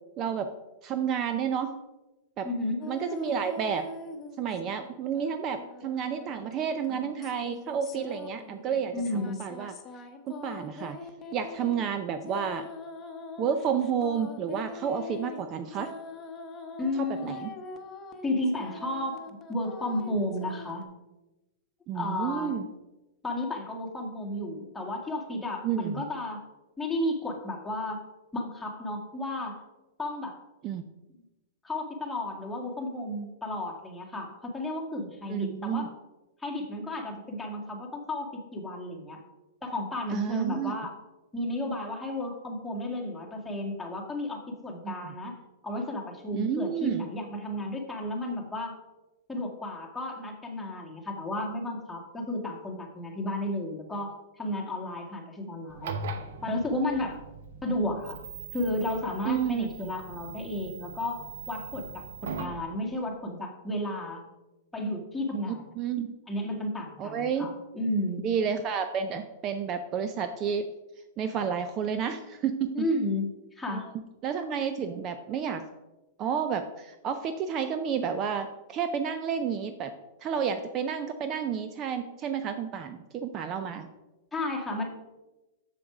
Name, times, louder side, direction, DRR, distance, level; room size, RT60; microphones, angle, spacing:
voice 1, 0.2-0.5 0.8-1.7 2.4-2.5 2.9-3.9 4.4-9.7 10.3-11.0 11.3-12.7 13.4-15.9 17.0-17.5 21.9-22.7 25.6-26.0 30.6-30.8 35.3-35.9 40.1-40.7 44.8-44.9 46.3-47.0 59.3-59.9 65.8-66.1 67.0-67.5 68.2-70.7 71.2-72.9 73.7-73.8 74.2-75.6 76.2-80.0 80.2-83.9, right 7 dB, 35° right, 9 dB, 0.5 m, -30 dB
voice 2, 2.4-2.8 8.9-9.4 16.8-17.2 18.2-20.9 21.9-22.6 23.2-26.4 26.8-28.0 28.3-29.6 30.0-30.4 31.6-35.9 36.4-39.2 39.6-40.9 41.3-45.3 45.6-48.7 49.3-55.9 56.4-57.2 57.6-58.2 58.5-64.2 64.7-65.6 66.3-68.2 72.7-73.9 84.3-84.8, left 1 dB, 5° left, -1 dB, 1.7 m, -33 dB
sound 1, 2.8-4.9 5.1-20.8, left 3 dB, 25° left, 1.0 m, -43 dB
sound 2, 55.7-62.6, right 4 dB, 70° right, 1.0 m, -40 dB
6.9 x 6.7 x 4.8 m, 1.1 s
hypercardioid pair, 130°, 0 cm